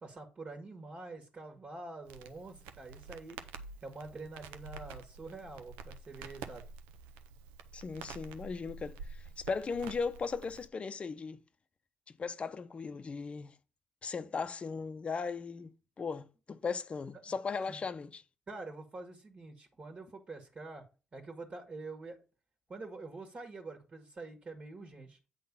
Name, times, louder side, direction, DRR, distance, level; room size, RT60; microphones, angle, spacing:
voice 1, 0.0-3.4 3.8-6.6 17.3-17.4 17.7-17.8 18.5-20.8 21.1-22.2 22.7-25.2, right 3 dB, 45° right, 2.0 m, -46 dB
Crackle, 2.1-10.7, right 5 dB, 85° right, 0.6 m, -48 dB
voice 2, 7.7-11.4 12.2-13.5 14.0-18.2, left 5 dB, 40° left, 0.7 m, -37 dB
8.5 x 3.9 x 5.4 m
hypercardioid pair, 55°, 3 cm